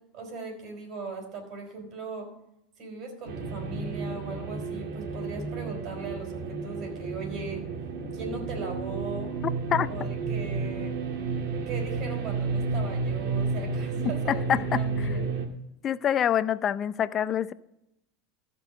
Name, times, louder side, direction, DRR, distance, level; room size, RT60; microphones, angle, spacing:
voice 1, 0.1-2.3 2.8-7.6 8.1-9.3 9.9-11.0 11.5-15.3, right 3 dB, 45° right, 4.6 m, -39 dB
sound 1, 3.3-15.5, right 4 dB, 65° right, 1.9 m, -31 dB
voice 2, 14.3-14.8 15.8-17.5, left 9 dB, 35° left, 0.5 m, -26 dB
14.5 x 5.4 x 6.3 m
supercardioid pair, 120°, 0 cm